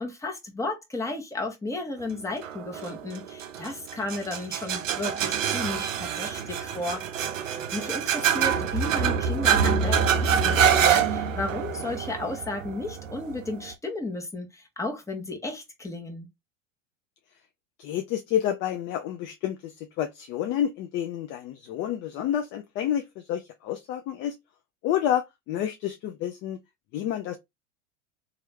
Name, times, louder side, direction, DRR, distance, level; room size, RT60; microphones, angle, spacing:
voice 1, 0.0-7.0 7.4-16.3, left 2 dB, 10° left, 1.0 m, -34 dB
sound 1, 2.4-13.7, right 7 dB, 80° right, 0.6 m, -26 dB
voice 2, 17.8-24.3 24.8-26.6 26.9-27.4, left 10 dB, 30° left, 0.4 m, -29 dB
3.0 x 2.4 x 3.2 m
hypercardioid pair, 85°, 39 cm